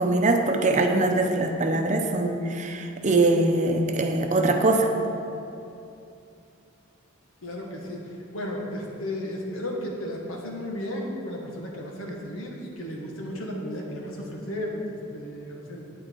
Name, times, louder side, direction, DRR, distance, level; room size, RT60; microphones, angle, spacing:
voice 1, 0.0-4.9, right 2 dB, 35° right, 4 dB, 0.7 m, -22 dB
voice 2, 7.4-15.9, left 1 dB, 90° left, -1 dB, 1.6 m, -34 dB
9.0 x 8.8 x 4.6 m, 2.7 s
head